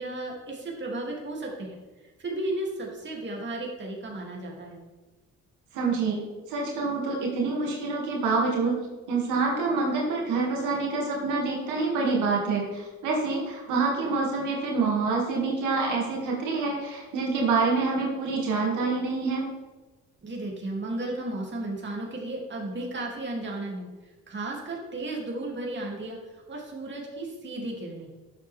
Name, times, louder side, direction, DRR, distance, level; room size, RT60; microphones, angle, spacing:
voice 1, 0.0-1.8 2.2-4.8 20.2-23.9 24.3-26.2 26.5-28.1, right 2 dB, 40° right, -1 dB, 2.9 m, -34 dB
voice 2, 5.7-6.2 6.5-8.7 9.1-19.5, right 4 dB, 90° right, -2 dB, 2.5 m, -26 dB
11.5 x 7.7 x 3.5 m, 1.2 s
cardioid pair, 90°, 30 cm